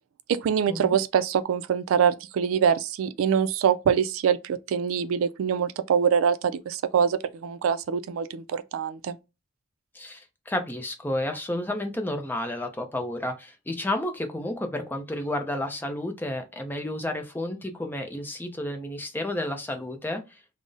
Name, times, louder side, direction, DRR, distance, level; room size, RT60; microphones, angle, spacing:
voice 1, 0.3-9.2, right 7 dB, 90° right, 0.3 m, -24 dB
voice 2, 9.9-20.4, left 1 dB, 10° left, 0.4 m, -31 dB
2.5 x 2.0 x 3.7 m
head